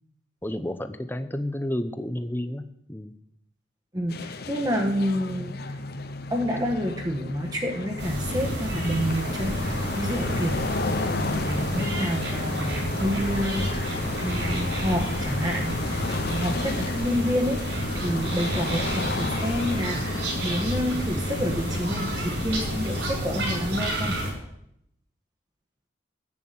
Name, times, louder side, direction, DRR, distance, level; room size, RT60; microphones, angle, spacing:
voice 1, 0.4-3.1, left 1 dB, 10° left, 10 dB, 0.8 m, -31 dB
voice 2, 3.9-5.6 6.3-24.2, equal, 20° right, 1 dB, 1.4 m, -29 dB
sound 1, 4.1-23.2, left 3 dB, 55° left, 0.9 m, -33 dB
sound 2, 8.0-24.3, equal, 65° right, 5.7 m, -30 dB
11.0 x 8.3 x 9.4 m, 0.75 s
head